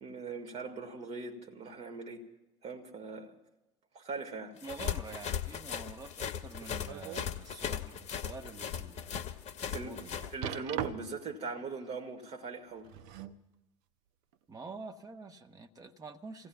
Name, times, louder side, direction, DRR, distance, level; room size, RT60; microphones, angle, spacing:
voice 1, 0.0-2.3 2.6-3.3 3.9-4.5 9.7-10.0 10.3-12.9, right 4 dB, 45° right, 2.0 m, -40 dB
sound 1, 4.6-10.3, left 8 dB, 45° left, 1.0 m, -37 dB
voice 2, 4.6-10.3 14.5-16.5, right 4 dB, 20° right, 1.2 m, -47 dB
sound 2, 6.5-7.3 7.8-8.0 8.5-8.6 10.4-11.3 12.7-13.4 14.3-14.4, right 10 dB, 60° right, 0.7 m, -40 dB
29.5 x 16.5 x 2.4 m
figure-of-eight pair, 65°, 16 cm